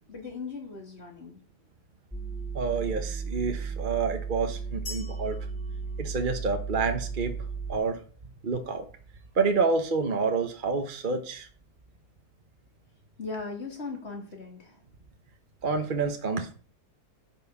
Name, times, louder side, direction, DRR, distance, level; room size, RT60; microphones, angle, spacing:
voice 1, 0.1-1.4 13.2-14.8, left 4 dB, 35° left, 1 dB, 3.4 m, -38 dB
sound 1, 2.1-7.7, right 5 dB, ahead, 0.7 m, -35 dB
voice 2, 2.5-5.4 6.0-7.3 7.7-8.0 8.4-8.9 9.3-11.5 15.6-16.5, right 4 dB, 35° right, 6 dB, 1.0 m, -28 dB
sound 2, 4.9-6.8, left 2 dB, 70° left, 4.8 m, -45 dB
9.6 x 6.2 x 7.2 m, 0.41 s
omnidirectional pair, 1.8 m